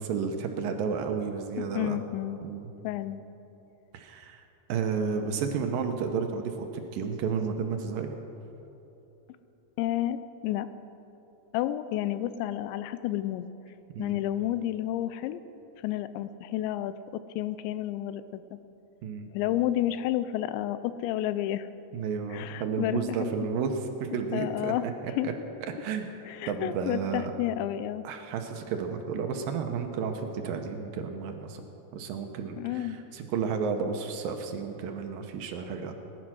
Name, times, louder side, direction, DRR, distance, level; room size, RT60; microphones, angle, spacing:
voice 1, 0.0-2.0 2.4-2.7 3.9-4.4 4.7-8.2 13.9-14.2 19.0-19.3 21.9-24.9 25.2-25.3 25.7-27.3 28.0-31.6 31.9-36.1, right 6 dB, 75° right, 4 dB, 2.2 m, -32 dB
voice 2, 1.6-2.4 2.8-3.2 9.8-10.2 10.4-10.7 11.5-13.5 14.0-15.4 15.8-16.9 17.4-18.4 19.3-21.7 22.3-23.3 24.3-24.8 25.2-25.3 26.3-28.0 32.6-33.0, left 13 dB, 90° left, 13 dB, 2.9 m, -30 dB
19.5 x 11.0 x 6.2 m, 3.0 s
omnidirectional pair, 5.0 m